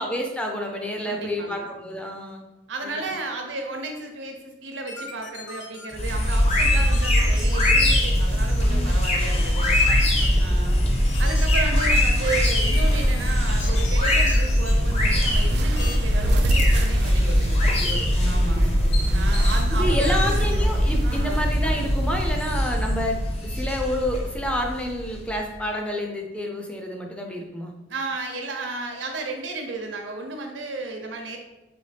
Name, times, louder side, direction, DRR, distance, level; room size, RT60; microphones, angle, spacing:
voice 1, 0.0-2.4 2.8-3.0 8.7-8.9 9.9-11.0 17.6-19.3 19.7-27.7, equal, 5° left, 1 dB, 0.4 m, -30 dB
voice 2, 1.0-1.7 2.7-9.7 10.4-10.8 11.2-17.6 18.2-18.7 19.1-20.6 21.0-21.4 27.9-31.4, right 3 dB, 90° right, 3 dB, 0.7 m, -33 dB
sound 1, 4.9-6.1 6.5-8.0 9.6-10.3 11.0-13.3 13.6-14.7 15.8-16.0, left 4 dB, 85° left, 0.6 m, -38 dB
sound 2, 5.9-25.4, equal, 35° left, 0.7 m, -21 dB
sound 3, 14.8-22.6, right 2 dB, 60° right, 0.3 m, -30 dB
4.1 x 2.9 x 3.3 m, 1.0 s
head